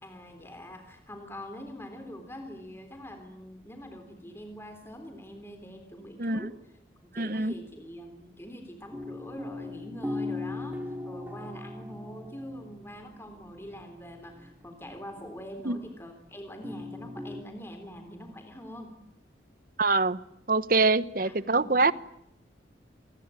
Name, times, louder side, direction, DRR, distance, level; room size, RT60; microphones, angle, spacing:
voice 1, 0.0-6.5 7.0-18.9 21.2-21.8, equal, 15° left, 6 dB, 3.6 m, -44 dB
voice 2, 6.2-6.5 7.1-7.5 15.6-15.8 19.8-20.2 20.5-21.9, right 3 dB, 50° right, 16 dB, 1.0 m, -24 dB
sound 1, 8.9-13.0 13.2-15.5 16.6-17.4, left 2 dB, 10° right, 2.3 m, -39 dB
27.5 x 21.0 x 8.9 m, 0.77 s
head